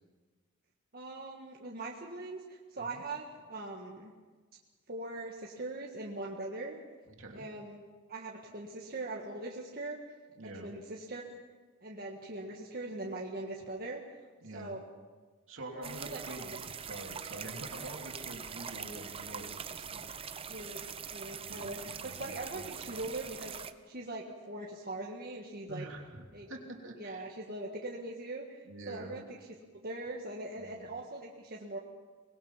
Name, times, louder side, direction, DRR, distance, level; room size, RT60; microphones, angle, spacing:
voice 1, 0.9-4.1 4.9-6.8 7.3-7.8 8.1-10.0 10.6-11.4 11.8-14.0 14.5-14.8 15.8-16.2 16.5-16.6 20.5-23.5 23.8-25.9 26.3-26.5 27.0-29.4 29.8-31.8, right 2 dB, 45° right, -2 dB, 1.7 m, -41 dB
voice 2, 10.3-10.7 14.4-14.7 15.5-20.1 21.4-23.0 25.7-27.2 28.6-29.2 30.5-30.9, right 1 dB, 70° right, 1 dB, 3.0 m, -46 dB
sound 1, 15.8-23.7, right 7 dB, 25° right, 0.7 m, -43 dB
24.5 x 20.0 x 5.8 m, 1.4 s
head